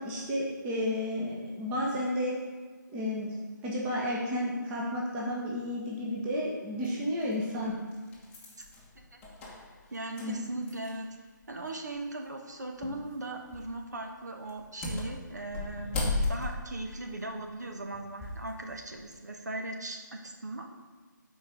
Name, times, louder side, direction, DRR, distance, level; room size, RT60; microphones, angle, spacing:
voice 1, 0.0-2.4 2.9-3.3 3.6-7.7 10.2-10.4, left 1 dB, 10° right, -4 dB, 1.1 m, -32 dB
sound 1, 6.8-6.9 7.6-11.1 11.4-11.5 12.8-13.1 13.5-13.8 14.5-18.5 18.9-19.2, left 2 dB, 10° left, 1.0 m, -36 dB
voice 2, 9.9-11.1 11.5-20.6, right 2 dB, 60° right, 3 dB, 1.3 m, -38 dB
11.5 x 4.6 x 5.1 m, 1.4 s
figure-of-eight pair, 150°, 11 cm